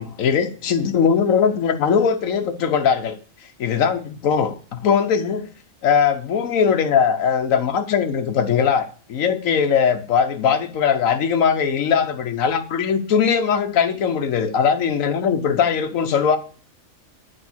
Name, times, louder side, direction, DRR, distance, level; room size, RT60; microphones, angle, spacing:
voice 1, 0.0-3.2 3.6-5.5 5.8-16.4, left 7 dB, 80° left, 1.3 m, -20 dB
8.1 x 4.8 x 6.1 m
omnidirectional pair, 1.4 m